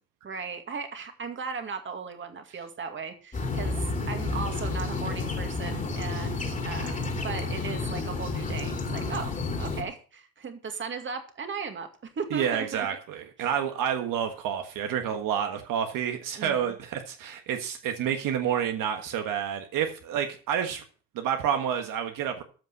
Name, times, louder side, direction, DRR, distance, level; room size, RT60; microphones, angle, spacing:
voice 1, 0.2-9.3 9.6-12.9 16.4-16.7, right 5 dB, 30° right, 7 dB, 2.2 m, -37 dB
sound 1, 3.3-9.8, left 3 dB, 20° left, 2.7 m, -31 dB
voice 2, 12.3-20.8 21.1-22.4, right 8 dB, 60° right, 5 dB, 1.5 m, -29 dB
14.0 x 5.4 x 6.7 m, 0.39 s
supercardioid pair, 100°, 36 cm